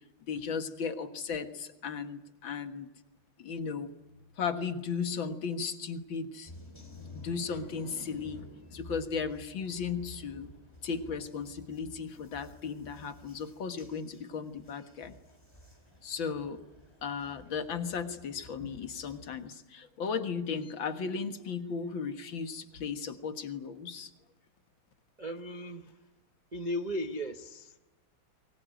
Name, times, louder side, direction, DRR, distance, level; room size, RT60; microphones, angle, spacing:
voice 1, 0.3-2.9 3.4-3.9 4.4-6.5 7.1-8.4 8.7-10.5 10.8-15.2 16.0-16.6 17.0-24.1, left 5 dB, 65° left, 9 dB, 2.3 m, -36 dB
sound 1, 6.5-19.5, left 2 dB, 10° left, 4.2 m, -52 dB
voice 2, 25.2-26.1 26.5-27.8, equal, 35° right, 6 dB, 0.7 m, -36 dB
23.5 x 21.5 x 9.2 m, 1.0 s
omnidirectional pair, 2.3 m